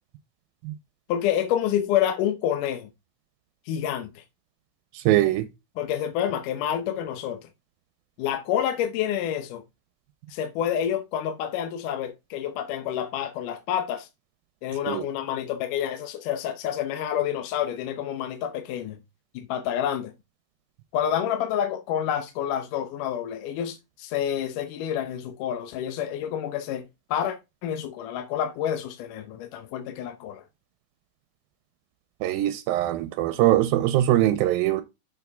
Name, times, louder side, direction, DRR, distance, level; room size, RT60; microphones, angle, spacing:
voice 1, 1.1-2.9 3.7-4.2 5.8-7.5 8.2-9.6 10.3-14.1 14.6-19.0 19.3-20.1 20.9-27.4 27.6-30.4, left 10 dB, 75° left, 2.2 m, -28 dB
voice 2, 5.1-5.5 14.9-15.0 32.2-34.8, right 14 dB, 85° right, 2.4 m, -22 dB
7.0 x 6.4 x 3.5 m
omnidirectional pair, 4.2 m